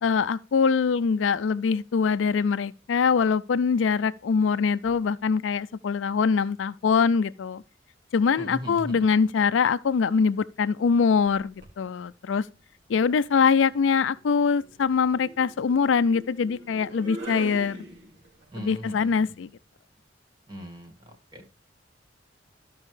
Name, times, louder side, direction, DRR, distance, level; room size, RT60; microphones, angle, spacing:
voice 1, 0.0-7.6 8.1-12.4 12.9-17.8 18.6-19.5, left 5 dB, 85° left, 0.4 m, -23 dB
voice 2, 8.4-9.0 18.5-19.1 20.5-20.9 21.3-21.5, equal, 25° right, 1.9 m, -37 dB
sound 1, 11.3-11.8 13.2-18.4, right 1 dB, 85° right, 2.8 m, -43 dB
13.5 x 5.4 x 3.2 m
head